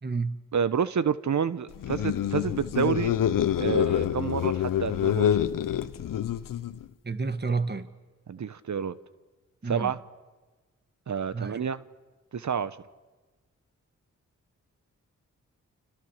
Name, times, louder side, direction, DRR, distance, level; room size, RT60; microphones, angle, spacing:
voice 1, 0.0-0.4 7.0-7.9 9.6-9.9 11.3-11.6, right 4 dB, 30° right, 1.9 m, -29 dB
voice 2, 0.5-3.1 3.6-5.5 8.3-9.0 9.7-10.0 11.1-11.8 12.3-12.8, right 7 dB, 60° right, 1.1 m, -29 dB
sound 1, 1.7-6.8, left 10 dB, 80° left, 1.0 m, -26 dB
30.0 x 27.0 x 6.7 m
supercardioid pair, 40°, 33 cm